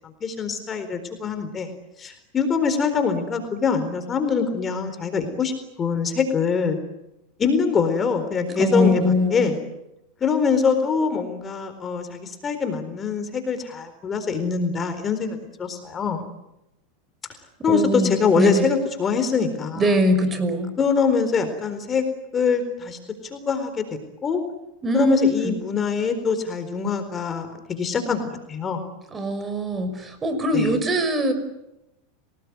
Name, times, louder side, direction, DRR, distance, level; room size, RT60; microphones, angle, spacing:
voice 1, 0.2-1.7 2.0-5.5 5.8-6.8 7.4-9.6 10.2-16.2 17.6-19.8 20.8-22.0 22.3-23.0 23.3-24.4 24.9-28.8 30.5-30.7, left 5 dB, 25° left, 8 dB, 4.2 m, -24 dB
voice 2, 8.6-9.5 17.7-18.7 19.8-20.7 24.8-25.5 29.1-31.3, left 1 dB, 25° right, 10 dB, 5.8 m, -22 dB
30.0 x 19.5 x 9.6 m, 0.89 s
hypercardioid pair, 110°, 0 cm